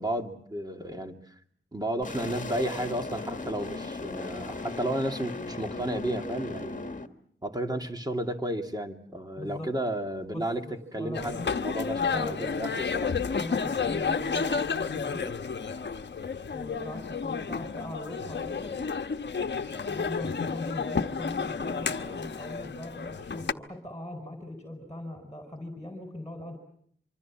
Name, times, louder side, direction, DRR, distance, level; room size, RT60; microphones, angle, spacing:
voice 1, 0.0-1.3 1.7-6.9 7.4-10.6 10.9-13.1, right 1 dB, 20° right, 5 dB, 2.5 m, -33 dB
sound 1, 2.0-7.1, left 3 dB, 40° left, 1.6 m, -37 dB
voice 2, 9.4-9.7 10.3-11.4 12.1-12.6 13.4-14.6 14.9-15.3 16.5-18.8 19.9-26.6, left 1 dB, 15° left, 4 dB, 4.8 m, -40 dB
sound 2, 11.1-23.5, left 5 dB, 60° left, 1.1 m, -31 dB
25.5 x 25.0 x 7.4 m, 0.65 s
wide cardioid pair, 95°, 21 cm